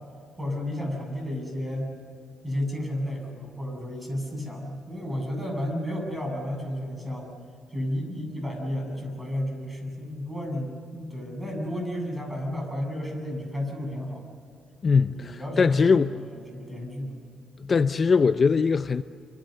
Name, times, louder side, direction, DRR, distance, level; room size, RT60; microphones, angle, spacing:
voice 1, 0.4-1.9 2.4-7.3 7.7-14.3 14.9-17.1, left 1 dB, 15° right, 8.0 m, -32 dB
voice 2, 14.8-16.1 17.6-19.0, left 5 dB, 40° left, 0.6 m, -21 dB
28.0 x 25.5 x 6.8 m
cardioid pair, 90°, 0 cm